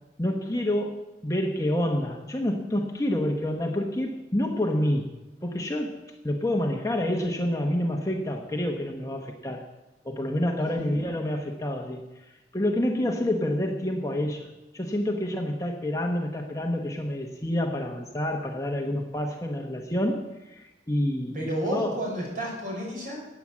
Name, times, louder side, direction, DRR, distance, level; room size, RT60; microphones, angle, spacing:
voice 1, 0.2-5.1 5.4-9.7 10.0-22.1, left 1 dB, 20° left, 2 dB, 1.2 m, -28 dB
voice 2, 21.3-23.3, right 1 dB, 50° right, -2 dB, 5.8 m, -31 dB
16.0 x 8.9 x 7.4 m, 1.0 s
head